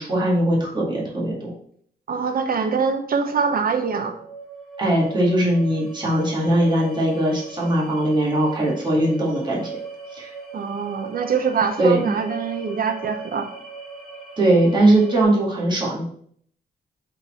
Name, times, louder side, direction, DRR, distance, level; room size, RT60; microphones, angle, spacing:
voice 1, 0.0-1.5 4.8-9.7 10.1-10.3 11.8-12.1 14.4-16.0, right 1 dB, 25° right, -4 dB, 2.0 m, -20 dB
voice 2, 2.1-4.2 10.5-13.5, right 5 dB, 55° right, 7 dB, 0.9 m, -24 dB
sound 1, 4.0-15.2, right 4 dB, ahead, 1.7 m, -39 dB
5.4 x 4.2 x 4.3 m, 0.63 s
cardioid pair, 90°, 18 cm